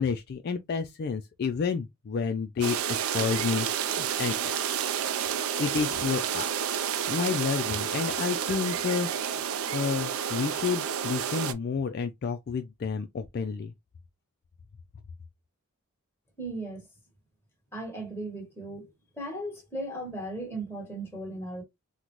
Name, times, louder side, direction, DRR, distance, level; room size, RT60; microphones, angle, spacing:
voice 1, 0.0-4.5 5.6-6.5 7.1-9.1 9.7-13.7, left 5 dB, 45° left, 0.3 m, -30 dB
sound 1, 2.6-11.5, right 8 dB, 70° right, 0.4 m, -30 dB
voice 2, 16.4-16.8 17.7-18.9 19.2-21.6, right 1 dB, 10° left, 1.2 m, -36 dB
3.8 x 2.1 x 3.0 m
head